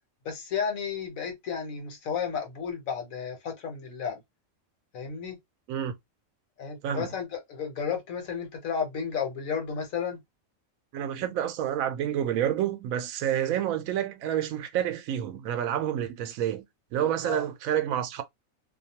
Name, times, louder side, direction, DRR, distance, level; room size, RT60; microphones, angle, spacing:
voice 1, 0.2-4.2 4.9-5.4 6.6-10.2 17.2-17.4, left 6 dB, 75° left, 1.3 m, -32 dB
voice 2, 10.9-16.6 16.9-18.2, right 10 dB, 80° right, 1.0 m, -29 dB
2.6 x 2.3 x 2.8 m
omnidirectional pair, 1.4 m